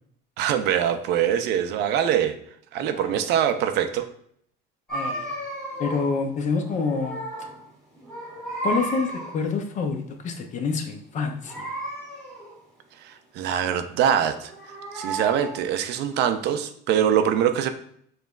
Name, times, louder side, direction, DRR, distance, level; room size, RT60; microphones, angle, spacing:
voice 1, 0.4-2.4 2.7-4.1 13.0-14.5 14.9-17.7, right 9 dB, 60° right, 9 dB, 0.4 m, -23 dB
voice 2, 2.8-3.3 4.9-5.3 5.8-7.2 8.6-11.7, left 4 dB, 40° left, 6 dB, 0.5 m, -27 dB
sound 1, 4.9-6.2 6.6-7.6 7.9-9.5 11.4-12.6 14.2-15.7, right 1 dB, ahead, 1.5 m, -33 dB
5.0 x 3.1 x 2.4 m, 0.66 s
cardioid pair, 135°, 20 cm